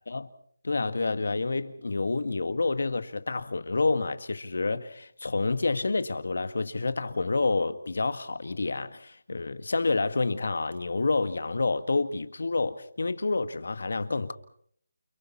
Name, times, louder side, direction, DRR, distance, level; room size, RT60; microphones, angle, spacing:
voice 1, 0.6-14.3, left 3 dB, 70° left, 1.8 m, -28 dB
29.5 x 29.5 x 4.3 m
figure-of-eight pair, 155°, 0 cm